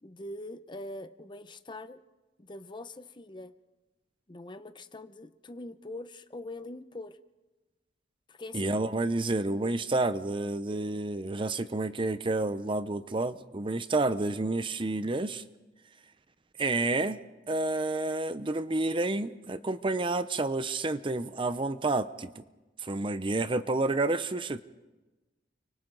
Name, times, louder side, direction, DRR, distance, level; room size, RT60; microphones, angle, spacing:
voice 1, 0.0-2.0 2.4-3.5 4.3-7.2 8.3-8.8, left 2 dB, 25° left, 11 dB, 0.8 m, -43 dB
voice 2, 8.5-15.4 16.6-17.2 17.5-22.4 22.8-24.6, right 2 dB, 30° right, 12 dB, 0.7 m, -29 dB
30.0 x 24.5 x 3.9 m, 1.1 s
head